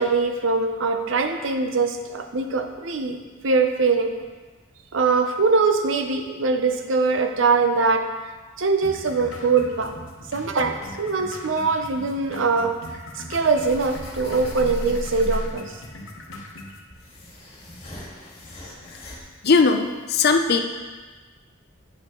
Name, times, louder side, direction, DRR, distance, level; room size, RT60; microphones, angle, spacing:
voice 1, 0.0-3.2 3.4-4.1 4.9-8.1 8.6-9.9 10.3-12.7 13.3-15.7, right 4 dB, 70° right, 6 dB, 0.7 m, -22 dB
sound 1, 8.8-16.8, left 1 dB, 75° left, 1.0 m, -40 dB
sound 2, 13.3-15.7 16.5-19.2, equal, 30° left, 1.9 m, -35 dB
voice 2, 19.4-20.6, left 4 dB, 50° left, 6 dB, 0.5 m, -18 dB
9.3 x 6.7 x 3.0 m, 1.3 s
head